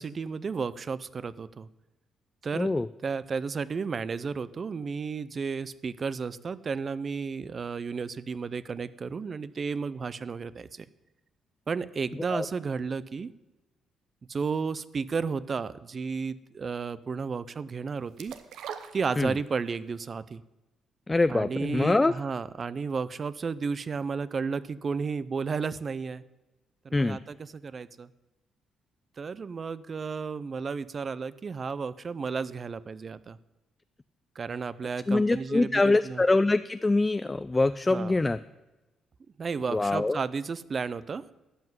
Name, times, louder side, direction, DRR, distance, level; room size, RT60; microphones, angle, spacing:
voice 1, 0.0-1.7 2.4-2.7 3.0-10.9 11.7-13.3 14.3-18.3 18.9-20.4 21.3-26.2 26.8-27.4 27.6-28.1 29.2-33.4 34.4-36.2 37.9-38.2 39.4-41.2, right 5 dB, 40° right, 18 dB, 0.5 m, -33 dB
voice 2, 2.5-2.9 12.3-12.5 19.2-19.4 21.1-22.1 26.9-27.2 35.1-38.4 39.7-40.2, left 2 dB, 20° left, 13 dB, 0.3 m, -24 dB
sound 1, 18.2-19.7 20.1-20.2, right 8 dB, 80° right, 0.9 m, -41 dB
12.5 x 5.8 x 9.4 m, 1.1 s
cardioid pair, 90°, 0 cm